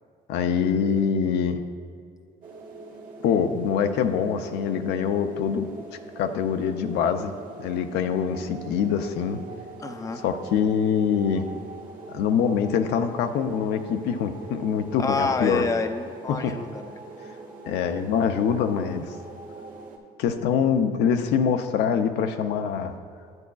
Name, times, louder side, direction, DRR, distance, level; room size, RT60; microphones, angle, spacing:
voice 1, 0.3-1.6 3.2-5.7 6.2-7.3 7.6-9.4 10.2-11.4 12.1-15.7 16.3-16.5 17.7-19.2 20.2-22.9, left 7 dB, 85° left, 7 dB, 0.5 m, -24 dB
sound 1, 2.4-20.0, right 3 dB, 55° right, 1.4 m, -42 dB
voice 2, 9.8-10.2 15.0-17.0, left 3 dB, 20° left, 6 dB, 0.5 m, -28 dB
10.5 x 8.3 x 2.3 m, 2.3 s
cardioid pair, 110°, 17 cm